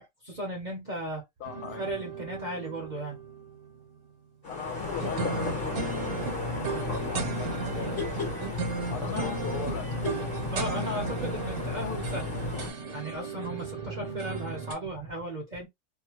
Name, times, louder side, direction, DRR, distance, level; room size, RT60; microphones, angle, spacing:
voice 1, 0.0-1.2 1.8-3.2 9.0-9.3 10.5-12.3 12.9-15.7, equal, 40° right, 0.7 m, -36 dB
voice 2, 1.4-1.9 4.5-6.3 6.8-8.2 8.9-10.1, left 9 dB, 80° left, 1.1 m, -40 dB
sound 1, 1.4-3.8 5.0-14.7, right 5 dB, 70° right, 1.2 m, -36 dB
sound 2, 4.4-12.7, left 2 dB, 40° left, 1.1 m, -33 dB
2.8 x 2.1 x 2.9 m
omnidirectional pair, 1.6 m